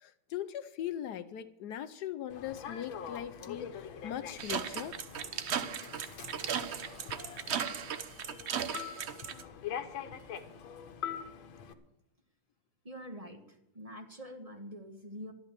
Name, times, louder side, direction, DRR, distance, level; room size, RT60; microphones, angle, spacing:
voice 1, 0.0-5.0, left 11 dB, 70° left, 12 dB, 1.1 m, -40 dB
Human voice / Subway metro underground, 2.3-11.7, left 8 dB, 85° left, 1.8 m, -44 dB
sound 1, 4.4-9.4, right 8 dB, 80° right, 0.6 m, -36 dB
voice 2, 12.8-15.3, equal, 20° right, 5 dB, 1.1 m, -45 dB
12.5 x 11.5 x 6.8 m, 0.82 s
omnidirectional pair, 2.1 m